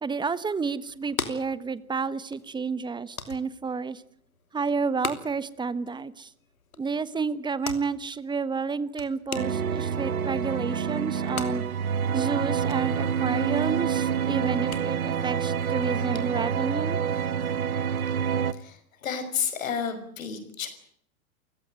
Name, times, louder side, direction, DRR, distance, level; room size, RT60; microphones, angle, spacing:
voice 1, 0.0-4.0 4.5-6.3 6.8-11.6 12.1-17.0, right 5 dB, 10° right, 17 dB, 1.3 m, -30 dB
sound 1, 0.9-17.6, left 5 dB, 85° left, 3.1 m, -43 dB
sound 2, 9.3-18.5, right 7 dB, 80° right, 1.4 m, -27 dB
voice 2, 18.5-20.7, left 7 dB, 70° left, 9 dB, 5.7 m, -31 dB
29.5 x 16.0 x 9.2 m, 0.67 s
hypercardioid pair, 105°, 42 cm